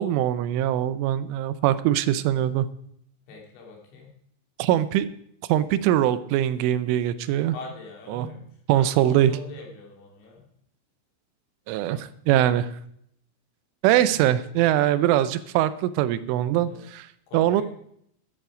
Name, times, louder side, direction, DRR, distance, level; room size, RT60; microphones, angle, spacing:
voice 1, 0.0-2.7 4.6-5.1 5.5-7.6 8.1-8.3 8.7-9.3 11.7-12.7 13.8-17.1 17.3-17.6, right 12 dB, 85° right, 14 dB, 3.2 m, -22 dB
voice 2, 3.3-4.1 7.5-10.5 11.9-12.0 13.8-14.3 15.0-15.2 16.6-16.8 17.3-17.6, left 3 dB, 70° left, 0 dB, 5.0 m, -43 dB
12.5 x 12.5 x 5.0 m, 0.70 s
omnidirectional pair, 5.6 m